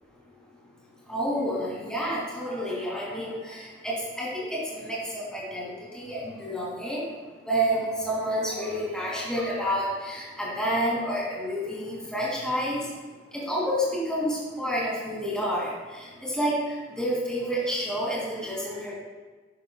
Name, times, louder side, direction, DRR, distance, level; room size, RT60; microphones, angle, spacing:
voice 1, 1.1-7.0 7.5-12.8 13.5-15.7 16.2-16.5 17.0-18.9, equal, 5° left, -6 dB, 2.7 m, -29 dB
11.5 x 10.5 x 2.4 m, 1.3 s
head